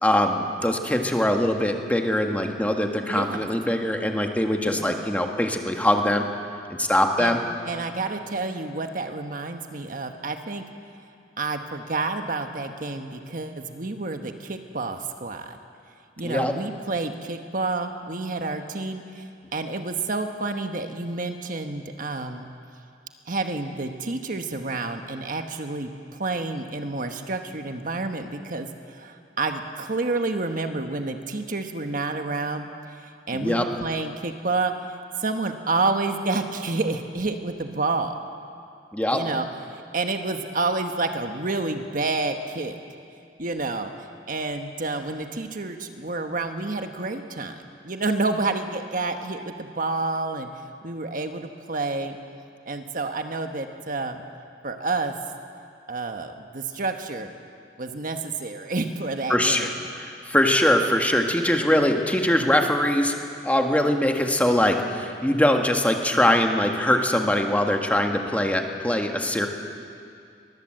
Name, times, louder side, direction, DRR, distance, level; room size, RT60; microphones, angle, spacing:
voice 1, 0.0-6.2 6.8-7.4 16.2-16.5 33.3-33.6 38.9-39.2 59.3-59.7 59.9-63.1 63.4-69.5, left 1 dB, 10° left, 3 dB, 1.7 m, -22 dB
voice 2, 3.1-3.5 4.6-5.0 7.2-7.4 7.6-10.6 11.4-15.6 16.2-22.5 23.3-25.9 26.2-34.7 35.2-38.2 39.1-39.5 39.7-42.8 43.4-43.9 44.3-50.5 50.8-52.2 52.7-54.2 54.6-55.1 55.9-57.3 57.8-59.8, right 3 dB, 50° right, 6 dB, 1.3 m, -29 dB
23.0 x 20.0 x 7.8 m, 2.4 s
head